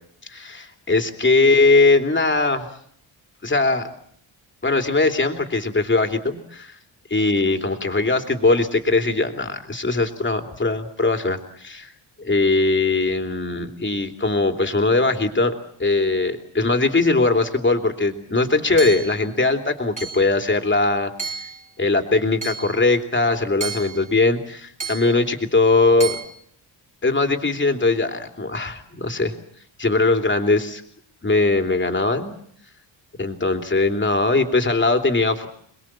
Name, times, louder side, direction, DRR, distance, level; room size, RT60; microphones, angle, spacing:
voice 1, 0.3-2.7 3.4-3.8 4.6-6.8 7.1-11.9 12.2-15.5 15.8-21.1 21.8-26.2 27.0-29.3 29.8-30.8 31.2-32.3 33.2-35.5, left 3 dB, 25° left, 5 dB, 3.1 m, -20 dB
Hammer / Chink clink, 18.8-19.2 20.0-20.4 21.2-21.6 22.4-22.8 23.6-24.1 24.8-25.2 26.0-26.2, right 5 dB, 15° right, 4.4 m, -31 dB
28.0 x 21.5 x 7.5 m, 0.65 s
wide cardioid pair, 125°, 47 cm